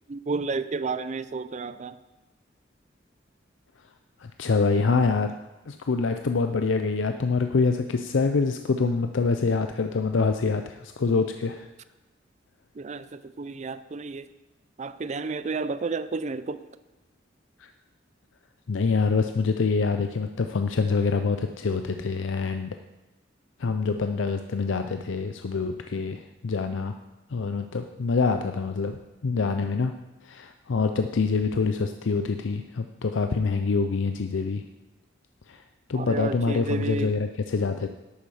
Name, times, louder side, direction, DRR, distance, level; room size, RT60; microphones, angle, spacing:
voice 1, 0.1-2.0 12.7-14.3 14.8-16.7 35.9-37.1, right 3 dB, 40° right, 14 dB, 0.4 m, -31 dB
voice 2, 4.2-5.3 5.7-11.7 17.6-17.7 18.7-22.8 23.6-26.9 27.3-29.0 29.2-29.9 30.2-34.6 35.5-35.6 35.9-37.9, left 4 dB, 80° left, 7 dB, 0.5 m, -25 dB
11.5 x 8.5 x 4.9 m, 1.1 s
head